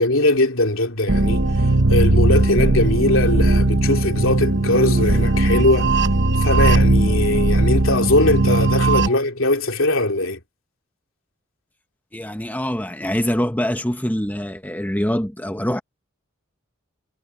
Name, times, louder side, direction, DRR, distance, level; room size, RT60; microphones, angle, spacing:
voice 1, 0.0-1.4 1.9-5.9 6.4-10.4, left 2 dB, 75° left, 2.9 m, -20 dB
sound 1, 1.1-9.1, right 2 dB, 60° right, 1.3 m, -18 dB
voice 2, 12.1-15.8, equal, 10° left, 1.1 m, -24 dB
head